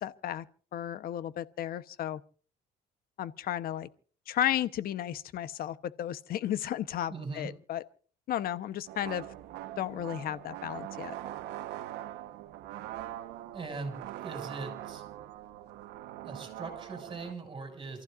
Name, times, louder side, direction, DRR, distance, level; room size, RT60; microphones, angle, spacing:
voice 1, 0.0-0.4 0.7-2.2 3.2-3.9 4.3-7.8 8.3-9.2 9.8-11.1, left 11 dB, 60° left, 0.9 m, -33 dB
voice 2, 7.1-7.5 13.5-15.0 16.2-18.0, right 3 dB, 30° right, 6.4 m, -40 dB
sound 1, 8.9-17.3, right 13 dB, 85° right, 1.2 m, -42 dB
28.5 x 15.0 x 2.5 m
cardioid pair, 110°, 17 cm